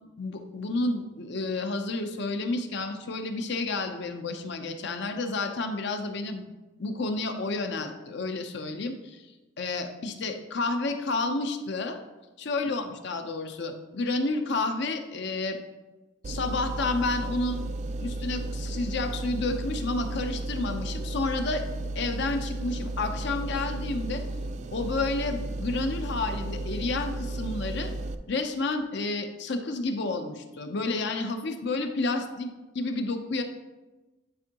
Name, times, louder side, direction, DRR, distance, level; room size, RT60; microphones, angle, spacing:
voice 1, 0.2-6.4 6.8-9.2 9.6-12.0 12.4-15.6 16.2-17.6 18.0-21.6 21.9-24.2 24.7-27.9 28.3-33.4, left 3 dB, 60° left, 6 dB, 0.7 m, -30 dB
sound 1, 16.2-28.2, right 2 dB, 35° right, 0.3 m, -33 dB
10.0 x 4.5 x 2.9 m, 1.1 s
head